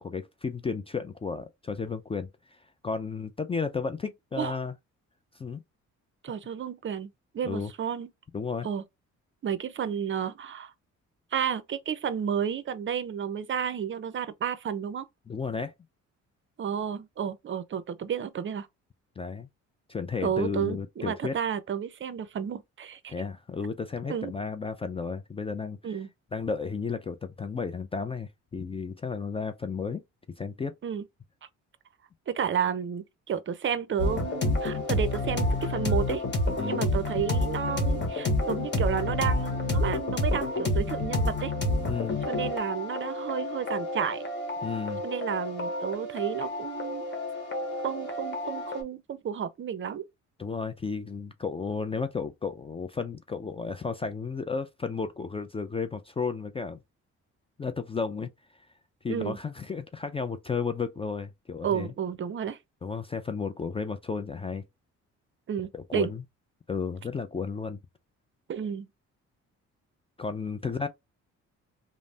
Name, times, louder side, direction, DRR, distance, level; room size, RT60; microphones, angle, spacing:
voice 1, 0.0-2.3 2.8-4.7 5.4-5.6 7.4-7.7 8.3-8.7 15.3-15.7 19.2-19.5 19.9-21.3 23.1-25.8 26.3-30.0 30.4-30.7 36.6-36.8 41.9-42.2 44.6-45.0 50.4-56.8 57.6-58.3 59.0-61.9 62.8-64.6 65.7-66.2 66.7-67.8 70.2-70.9, left 5 dB, 20° left, 0.3 m, -33 dB
voice 2, 6.2-8.1 8.6-8.8 9.4-10.7 11.3-15.0 16.6-18.7 20.2-23.1 24.1-24.3 25.8-26.1 30.8-31.0 32.3-36.2 36.6-41.5 42.3-44.2 45.0-47.0 47.8-50.1 59.1-59.4 61.6-62.6 65.5-66.1 68.5-68.9, right 8 dB, 40° right, 0.5 m, -31 dB
sound 1, 34.0-48.8, left 2 dB, 35° left, 1.1 m, -29 dB
3.2 x 2.0 x 2.6 m
cardioid pair, 90°, 30 cm